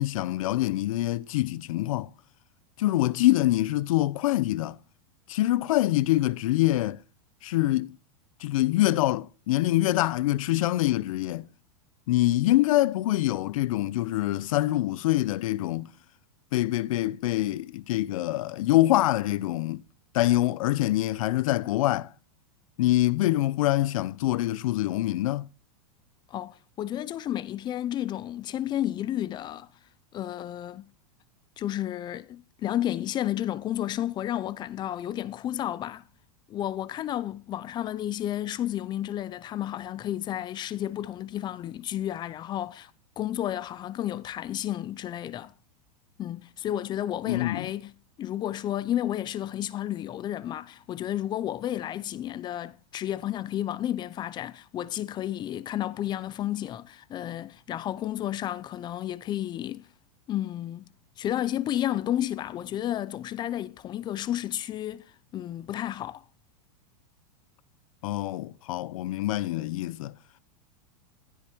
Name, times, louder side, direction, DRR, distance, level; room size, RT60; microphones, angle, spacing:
voice 1, 0.0-2.1 2.8-4.8 5.3-7.0 7.4-8.0 8.4-11.5 12.1-15.9 16.5-19.8 20.1-22.1 22.8-25.5 47.3-47.7 68.0-70.1, left 16 dB, 70° left, 0.8 m, -25 dB
voice 2, 26.3-29.7 30.1-30.9 31.6-36.0 36.5-42.9 43.2-45.5 46.2-47.9 48.2-59.9 60.3-60.9 61.2-65.1 65.3-66.2, left 12 dB, 25° left, 0.7 m, -32 dB
15.5 x 13.5 x 4.6 m
supercardioid pair, 150°, 18 cm